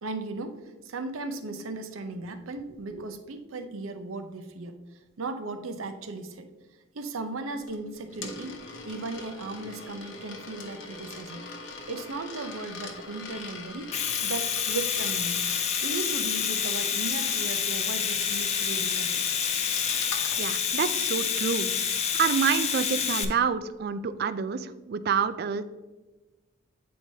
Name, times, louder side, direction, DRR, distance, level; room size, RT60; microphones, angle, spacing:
voice 1, 0.0-4.8 5.2-6.5 6.9-8.5 8.8-11.5 11.9-13.9 14.2-15.4 15.8-19.4, right 3 dB, 75° right, 7 dB, 0.7 m, -36 dB
Coin (dropping), 7.7-20.4, left 4 dB, 65° left, 0.9 m, -41 dB
Domestic sounds home sounds, 13.7-23.2, left 7 dB, 30° left, 0.4 m, -28 dB
voice 2, 20.4-21.7 22.2-25.6, right 6 dB, 50° right, 12 dB, 0.3 m, -27 dB
8.4 x 4.6 x 2.8 m, 1.2 s
head